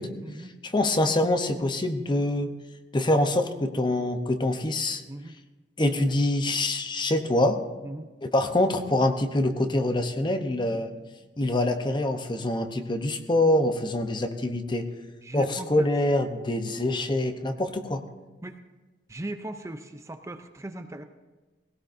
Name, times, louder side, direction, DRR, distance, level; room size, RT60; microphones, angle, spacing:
voice 1, 0.6-2.5 2.9-5.0 5.8-7.6 8.2-10.9 11.4-14.9 15.3-18.0, left 1 dB, 25° left, 7 dB, 0.8 m, -25 dB
voice 2, 15.2-15.9 18.4-18.6 19.1-21.0, right 1 dB, 15° right, 7 dB, 0.5 m, -38 dB
18.5 x 17.0 x 2.6 m, 1.2 s
head